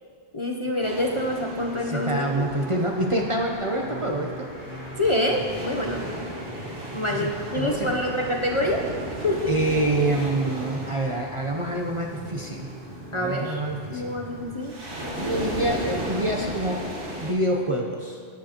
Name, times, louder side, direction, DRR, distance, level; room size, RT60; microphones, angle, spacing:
voice 1, 0.3-2.5 5.0-6.0 6.5-8.8 9.2-9.5 13.1-13.6 13.9-14.7, left 1 dB, 30° left, 0 dB, 0.7 m, -26 dB
sound 1, 0.8-17.3, right 1 dB, 55° right, 1.5 m, -36 dB
sound 2, 1.3-14.7, equal, 80° left, 3.0 m, -41 dB
voice 2, 1.8-4.5 7.1-7.9 9.5-12.7 13.1-14.1 15.1-16.8 17.2-18.2, right 1 dB, 35° right, 0 dB, 0.7 m, -26 dB
13.0 x 10.5 x 2.9 m, 2.1 s
omnidirectional pair, 1.1 m